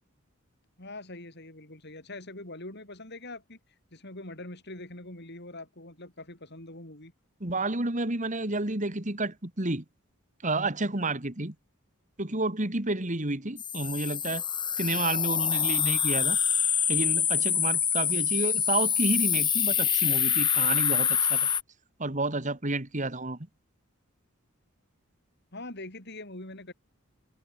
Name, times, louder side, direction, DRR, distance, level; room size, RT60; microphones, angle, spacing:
voice 1, 0.8-3.6 3.9-7.1 25.5-26.7, left 2 dB, 55° left, 7.2 m, -43 dB
voice 2, 7.4-9.8 10.4-11.5 12.2-14.4 14.8-16.4 16.9-21.5 22.0-23.4, right 2 dB, 35° right, 2.6 m, -30 dB
sound 1, 13.6-21.6, left 8 dB, 20° left, 2.6 m, -26 dB
head